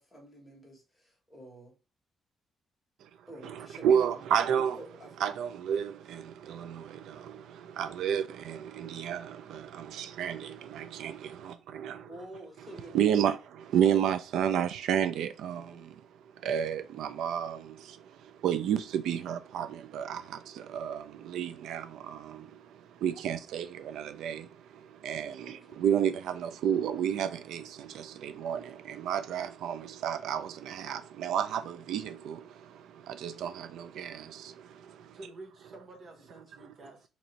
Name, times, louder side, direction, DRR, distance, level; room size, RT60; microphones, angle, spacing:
voice 1, 0.0-1.8 3.3-4.1 4.7-5.1 12.0-13.1 13.8-14.1 15.5-15.8 25.4-25.8, right 1 dB, 10° left, 1.2 m, -48 dB
voice 2, 3.0-12.2 12.6-35.2 36.6-36.9, right 9 dB, 90° right, 0.3 m, -32 dB
voice 3, 35.1-37.1, right 2 dB, 40° right, 0.7 m, -49 dB
2.9 x 2.6 x 4.2 m
cardioid pair, 175°, 0 cm